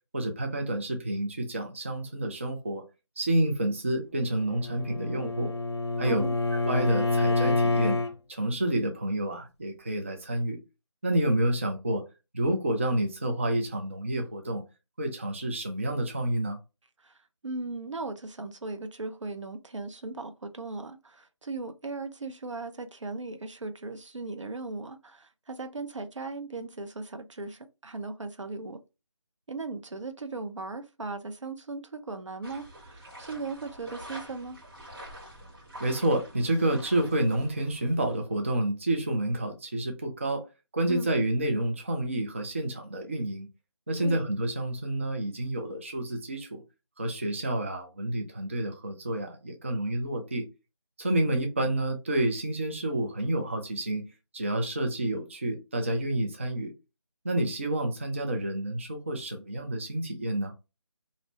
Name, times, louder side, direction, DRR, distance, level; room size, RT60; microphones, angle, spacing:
voice 1, 0.1-2.8 3.2-5.5 6.0-6.2 6.5-8.0 8.3-10.6 11.0-12.0 12.3-14.6 15.0-16.6 35.8-40.4 40.7-43.5 43.9-46.6 47.0-50.5 51.0-54.0 54.3-56.7 57.2-60.5, right 1 dB, 25° right, 0.4 m, -29 dB
Bowed string instrument, 4.3-8.1, left 2 dB, 60° left, 0.5 m, -27 dB
voice 2, 6.0-6.4 17.0-17.2 17.4-28.8 29.5-34.6 40.9-41.1 44.0-44.2, right 3 dB, 85° right, 0.6 m, -38 dB
sound 1, 32.4-38.2, right 1 dB, 50° right, 1.4 m, -46 dB
2.5 x 2.0 x 2.9 m
figure-of-eight pair, 160°, 15 cm